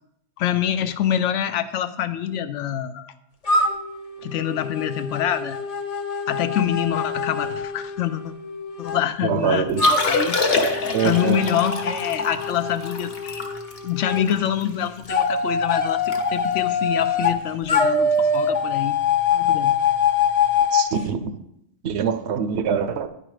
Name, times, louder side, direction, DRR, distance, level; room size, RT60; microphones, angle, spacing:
voice 1, 0.4-3.1 4.2-5.6 6.3-8.3 8.8-10.4 11.0-13.5 13.8-18.9 19.3-19.7, left 10 dB, 80° left, 0.9 m, -25 dB
sound 1, 3.5-9.0 9.8-14.2 15.1-17.4 17.7-20.9, left 4 dB, 40° left, 0.7 m, -24 dB
voice 2, 9.2-9.9 10.9-11.4 20.7-21.3 21.8-23.1, right 7 dB, 70° right, 0.8 m, -24 dB
Liquid, 9.7-15.1 15.5-15.6 15.9-16.2 16.5-16.7 17.3-17.5 19.0-19.1, left 3 dB, 55° left, 1.2 m, -26 dB
9.9 x 4.9 x 4.9 m
omnidirectional pair, 1.3 m